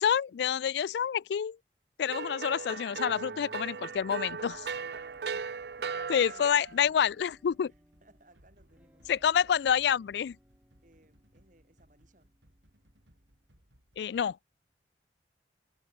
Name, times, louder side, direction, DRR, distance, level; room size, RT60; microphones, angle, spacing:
voice 1, 0.0-1.6 2.0-4.6 6.1-7.7 9.1-10.4 14.0-14.4, left 8 dB, 70° left, 0.3 m, -28 dB
sound 1, 2.1-6.8, right 5 dB, 65° right, 0.5 m, -37 dB
sound 2, 2.7-6.1 6.6-13.4, equal, 10° right, 7.6 m, -62 dB
sound 3, 3.9-14.3, equal, 85° right, 7.9 m, -65 dB
voice 2, 4.5-6.6 7.6-9.6 10.8-12.3, right 2 dB, 45° right, 3.7 m, -61 dB
head